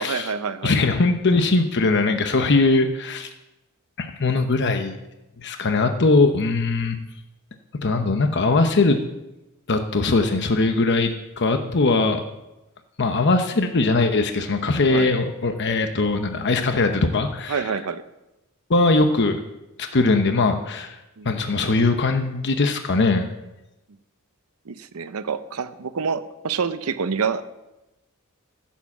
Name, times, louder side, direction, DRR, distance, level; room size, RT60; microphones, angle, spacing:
voice 1, 0.0-0.7 14.9-15.1 17.5-18.0 21.2-21.3 24.7-27.4, right 5 dB, 85° right, 11 dB, 0.7 m, -27 dB
voice 2, 0.6-3.3 4.0-5.0 5.4-7.0 7.8-9.0 9.7-12.2 13.0-17.7 18.7-19.4 19.8-21.0 21.2-23.3, left 3 dB, 55° left, 6 dB, 0.9 m, -20 dB
15.0 x 7.4 x 7.3 m, 0.98 s
head